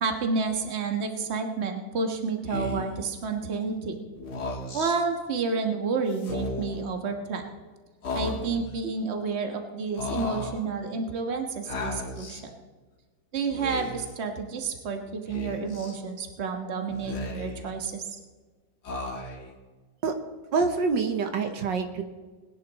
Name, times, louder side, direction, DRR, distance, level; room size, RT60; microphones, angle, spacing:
voice 1, 0.0-4.0 4.7-7.4 8.1-12.5 13.3-18.2, right 4 dB, 40° right, 4 dB, 1.5 m, -30 dB
Speech, 2.5-3.0 4.2-5.0 6.2-6.8 8.0-8.7 10.0-10.6 11.7-12.4 13.5-14.1 15.3-16.0 16.9-17.7 18.8-19.5, left 2 dB, 60° left, 2.3 m, -35 dB
voice 2, 20.5-22.0, right 4 dB, 75° right, 6 dB, 1.7 m, -26 dB
21.0 x 10.5 x 4.1 m, 1.4 s
omnidirectional pair, 2.0 m